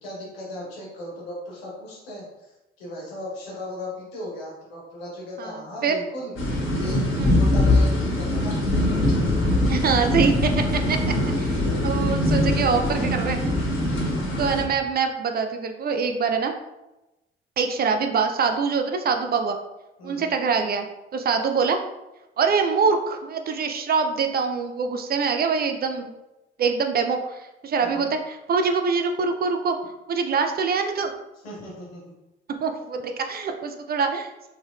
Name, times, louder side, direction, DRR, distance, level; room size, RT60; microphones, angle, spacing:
voice 1, 0.0-6.3 6.8-8.6 9.2-9.7 13.7-14.3 20.0-20.3 27.8-28.1 31.4-32.2, left 1 dB, 75° left, -4 dB, 1.2 m, -37 dB
voice 2, 5.4-6.0 7.2-7.3 9.4-11.0 11.4-13.4 14.4-16.5 17.6-19.6 20.0-20.9 21.1-21.8 22.4-26.1 26.6-29.8 30.1-31.1 32.6-34.5, right 5 dB, 30° right, 6 dB, 0.4 m, -24 dB
sound 1, 6.4-14.6, left 1 dB, 40° left, 1.2 m, -22 dB
3.9 x 3.2 x 2.3 m, 0.97 s
figure-of-eight pair, 45°, 30 cm